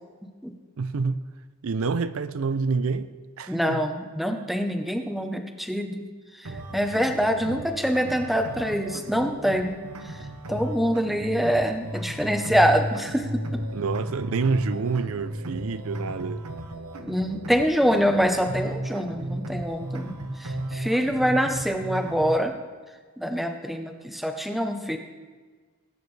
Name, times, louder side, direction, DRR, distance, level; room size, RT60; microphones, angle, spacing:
voice 1, 0.8-1.2 1.6-3.1 3.4-3.8 13.7-16.5, right 4 dB, 70° right, 0.5 m, -27 dB
voice 2, 3.5-10.1 10.5-13.6 17.0-22.5 23.2-25.0, equal, ahead, 0.7 m, -25 dB
sound 1, 6.4-22.4, right 1 dB, 85° right, 1.0 m, -34 dB
20.0 x 9.1 x 3.3 m
head